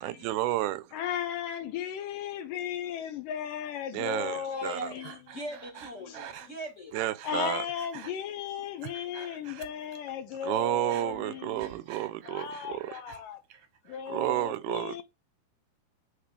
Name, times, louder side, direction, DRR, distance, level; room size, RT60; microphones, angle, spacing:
voice 1, 0.0-0.9 3.9-4.8 6.9-7.7 10.4-12.9 14.1-15.0, right 15 dB, 80° right, 2.5 m, -31 dB
voice 2, 0.9-5.1 6.1-6.2 7.2-11.7 12.3-13.4 13.9-15.0, left 9 dB, 75° left, 2.2 m, -36 dB
voice 3, 4.5-7.0, right 1 dB, 30° left, 1.3 m, -41 dB
Breathing, 5.0-7.4 7.7-8.1 8.6-10.1 10.4-13.2 13.5-14.1, right 9 dB, 65° right, 1.9 m, -47 dB
11.0 x 3.7 x 4.8 m
omnidirectional pair, 4.5 m